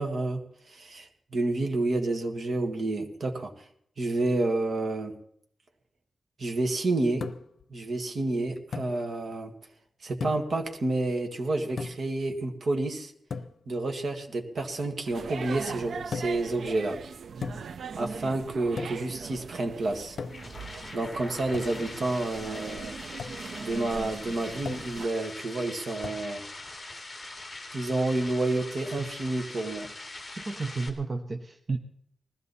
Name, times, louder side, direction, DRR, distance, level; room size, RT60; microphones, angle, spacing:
voice 1, 0.0-3.7 4.0-5.2 6.4-7.3 7.7-9.5 10.0-13.1 13.7-17.0 17.9-20.2 20.9-23.0 23.6-26.4 27.7-29.9, right 2 dB, 55° right, 4 dB, 1.7 m, -29 dB
sound 1, 7.2-7.6 8.7-9.0 10.2-10.6 11.8-12.2 13.3-13.6 16.1-16.5 17.4-17.8 18.8-19.1 20.2-20.6 21.5-21.8 23.2-23.4 24.6-25.0 26.0-26.3, left 5 dB, 70° left, 0.7 m, -37 dB
sound 2, 15.0-25.1, right 5 dB, 75° right, 0.5 m, -40 dB
sound 3, 19.9-30.9, left 2 dB, 20° left, 2.3 m, -42 dB
voice 2, 30.3-31.8, right 3 dB, 35° right, 4 dB, 0.8 m, -32 dB
20.0 x 15.0 x 4.2 m, 0.69 s
wide cardioid pair, 145°, 0 cm